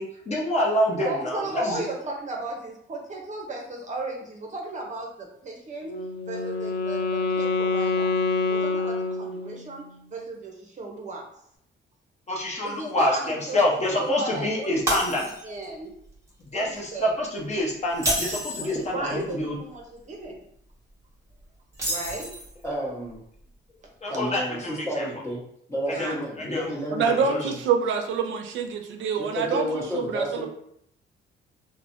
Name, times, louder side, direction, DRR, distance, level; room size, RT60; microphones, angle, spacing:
voice 1, 0.0-1.8 12.3-15.3 16.4-19.6 24.0-25.1 25.9-26.7 27.0-27.5, left 1 dB, 35° left, -2 dB, 0.8 m, -27 dB
voice 2, 1.0-5.9 6.3-8.2 8.5-11.3 12.6-13.6 13.9-14.8 15.2-15.9 16.5-17.2 18.5-20.4 21.8-22.3 24.0-24.2 25.9-26.2, right 2 dB, 35° right, 1 dB, 0.6 m, -35 dB
Wind instrument woodwind instrument, 5.9-9.8, left 3 dB, 60° left, 0.5 m, -26 dB
Shatter, 14.9-15.7 16.1-16.3 17.9-18.8 21.7-22.6, right 1 dB, 15° right, 1.3 m, -29 dB
voice 3, 22.6-23.2 24.1-25.4 25.7-27.6 29.2-30.5, equal, 15° left, -5 dB, 1.2 m, -31 dB
voice 4, 26.9-30.5, right 6 dB, 75° right, 5 dB, 0.4 m, -26 dB
3.2 x 2.1 x 2.6 m, 0.72 s
cardioid pair, 90°, 20 cm